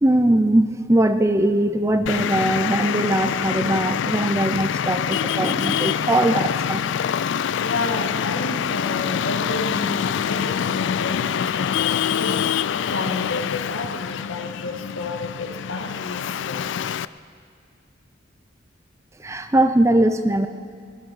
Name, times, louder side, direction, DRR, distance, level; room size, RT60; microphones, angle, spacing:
voice 1, 0.0-6.8 19.2-20.5, right 1 dB, 15° right, 9 dB, 0.5 m, -20 dB
Traffic noise roadway noise, 2.1-17.1, left 8 dB, 65° left, 0.3 m, -25 dB
voice 2, 7.6-12.5 12.9-16.7, left 2 dB, 85° left, 3 dB, 1.9 m, -30 dB
19.0 x 11.5 x 6.4 m, 2.3 s
head